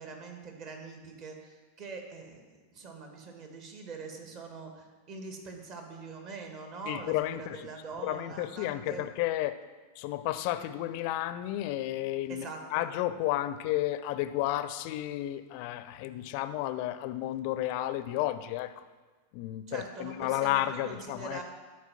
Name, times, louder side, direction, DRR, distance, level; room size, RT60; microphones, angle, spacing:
voice 1, 0.0-9.1 12.3-12.9 19.7-21.4, right 4 dB, 40° right, 3 dB, 1.7 m, -43 dB
voice 2, 6.9-7.7 8.0-9.6 10.0-18.8 19.3-21.4, left 14 dB, 45° left, 13 dB, 0.5 m, -32 dB
12.0 x 4.8 x 5.8 m, 1.3 s
figure-of-eight pair, 90°, 0 cm